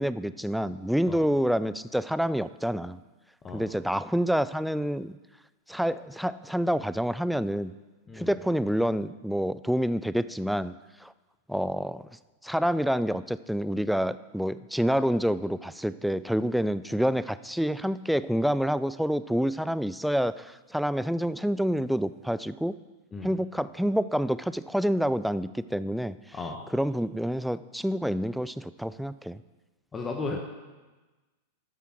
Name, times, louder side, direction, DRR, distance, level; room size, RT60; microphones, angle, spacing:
voice 1, 0.0-3.0 3.5-5.2 5.7-7.7 8.2-10.7 11.0-11.1 11.5-12.0 12.4-22.7 23.2-26.2 26.7-29.4 30.3-30.4, equal, ahead, 15 dB, 0.3 m, -27 dB
voice 2, 29.9-30.4, left 3 dB, 20° left, 2 dB, 1.1 m, -34 dB
13.0 x 6.9 x 4.5 m, 1.2 s
figure-of-eight pair, 95°, 0 cm